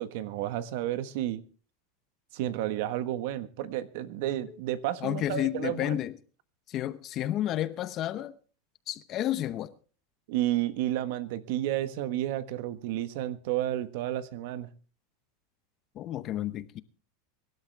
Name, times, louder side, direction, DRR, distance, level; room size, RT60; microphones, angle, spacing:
voice 1, 0.0-1.4 2.3-6.0 10.3-14.7, right 13 dB, 65° right, 1.3 m, -31 dB
voice 2, 5.0-6.1 6.7-8.4 8.9-9.7 15.9-16.8, left 12 dB, 35° left, 0.8 m, -31 dB
24.0 x 12.0 x 3.4 m
supercardioid pair, 150°, 0 cm